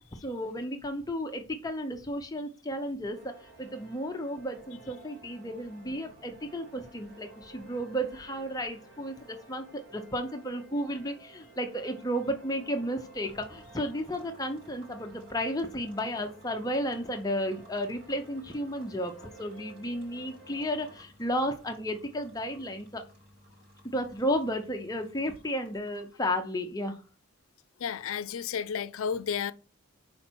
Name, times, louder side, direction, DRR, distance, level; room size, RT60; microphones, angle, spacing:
voice 1, 0.1-23.0 23.8-27.0, equal, 15° left, 0.6 m, -33 dB
sound 1, 3.1-21.0, right 3 dB, 75° right, 2.2 m, -53 dB
sound 2, 13.2-26.3, equal, 45° right, 3.1 m, -59 dB
voice 2, 27.8-29.5, left 7 dB, 75° left, 0.4 m, -32 dB
5.4 x 4.5 x 4.4 m
head